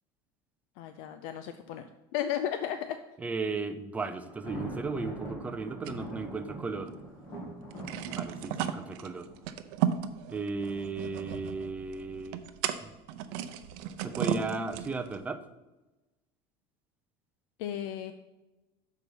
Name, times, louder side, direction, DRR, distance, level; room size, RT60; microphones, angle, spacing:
voice 1, 0.8-1.9 2.1-3.0 17.6-18.1, left 10 dB, 65° left, 9 dB, 0.5 m, -34 dB
voice 2, 3.2-6.9 8.1-9.3 10.3-12.4 14.0-15.4, right 3 dB, 10° right, 9 dB, 0.5 m, -35 dB
Thunder, 4.3-10.1, right 1 dB, 25° left, 2.5 m, -43 dB
sound 1, 5.9-7.0 7.3-7.4 7.7-15.2, right 9 dB, 70° right, 0.6 m, -35 dB
6.7 x 4.7 x 6.9 m, 1.1 s
cardioid pair, 155°, 13 cm